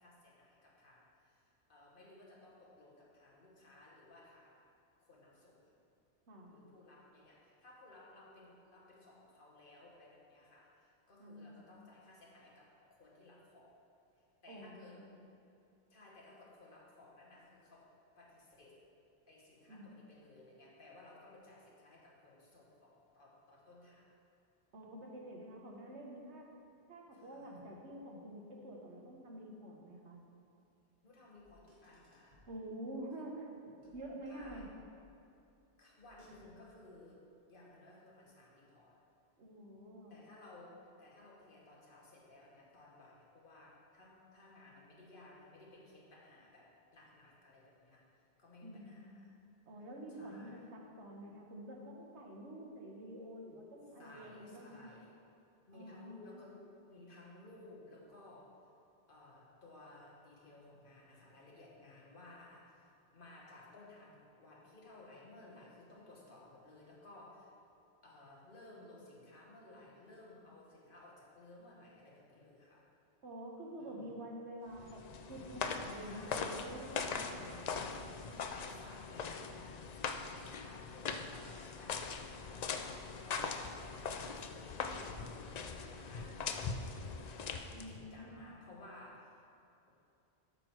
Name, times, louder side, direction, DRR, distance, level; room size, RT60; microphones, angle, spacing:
voice 1, 0.0-4.6 5.0-5.7 6.5-13.8 14.4-15.0 15.9-18.9 19.3-24.2 27.1-27.7 31.0-32.4 34.3-34.7 35.8-39.0 40.1-49.3 50.1-50.6 54.0-55.1 55.7-58.7 59.1-67.6 68.0-72.9 73.8-74.2 76.0-76.5 78.3-79.9 80.6-89.4, left 2 dB, 45° left, -3 dB, 1.6 m, -58 dB
voice 2, 11.2-11.6 14.5-15.2 19.7-19.9 24.7-26.5 26.9-30.2 32.5-34.7 39.4-40.1 48.6-49.3 49.7-54.9 55.7-56.5 73.2-75.0 75.3-77.7 87.7-88.5, right 1 dB, 65° right, 0 dB, 1.4 m, -48 dB
Car, 31.4-32.6 33.8-35.1 36.0-36.8, equal, 40° right, 2.3 m, -63 dB
sound 1, 74.8-88.1, left 5 dB, 70° left, 0.4 m, -41 dB
8.8 x 6.1 x 4.6 m, 2.7 s
omnidirectional pair, 1.2 m